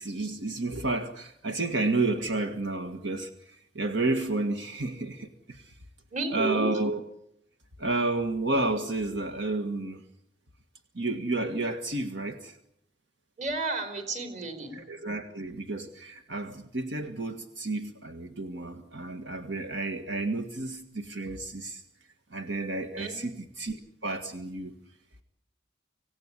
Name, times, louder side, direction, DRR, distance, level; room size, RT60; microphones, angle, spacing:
voice 1, 0.0-5.8 6.3-7.0 7.8-10.0 10.9-12.6 14.7-21.8 22.3-23.8 24.0-24.7, right 2 dB, 70° right, 6 dB, 1.8 m, -31 dB
voice 2, 6.1-6.7 13.4-14.8 23.0-23.2, right 3 dB, 40° right, 7 dB, 3.9 m, -32 dB
26.0 x 17.5 x 9.9 m, 0.76 s
head